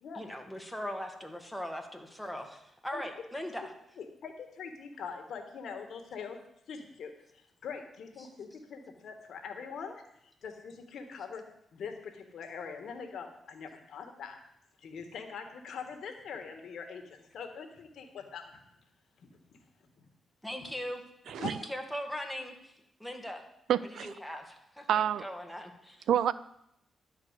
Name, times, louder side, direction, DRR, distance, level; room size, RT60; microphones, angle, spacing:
voice 1, 0.2-3.7 8.2-8.3 20.4-21.0 21.6-22.7 23.0-23.4 23.9-26.1, equal, ahead, 3 dB, 1.8 m, -40 dB
voice 2, 4.0-6.4 6.7-7.1 7.6-11.4 11.7-14.4 14.8-18.6 19.2-19.3 20.6-20.7 21.4-21.5, left 6 dB, 75° left, 5 dB, 1.5 m, -43 dB
voice 3, 21.3-21.6 23.7-24.1 24.9-25.3 26.1-26.3, right 10 dB, 80° right, 17 dB, 0.4 m, -28 dB
11.5 x 4.6 x 8.1 m, 0.79 s
cardioid pair, 70°, 0 cm